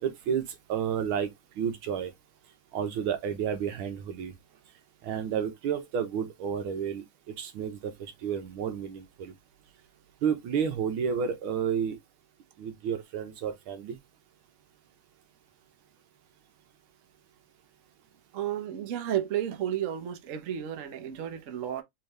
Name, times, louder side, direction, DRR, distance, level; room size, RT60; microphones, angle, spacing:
voice 1, 0.0-0.4 0.7-1.3 1.6-2.1 2.7-4.3 5.0-7.0 7.4-9.3 10.2-12.0 12.6-14.0, right 7 dB, 80° right, 1.8 m, -31 dB
voice 2, 18.3-21.8, right 10 dB, 50° right, 1.0 m, -32 dB
4.5 x 3.4 x 3.2 m
omnidirectional pair, 2.3 m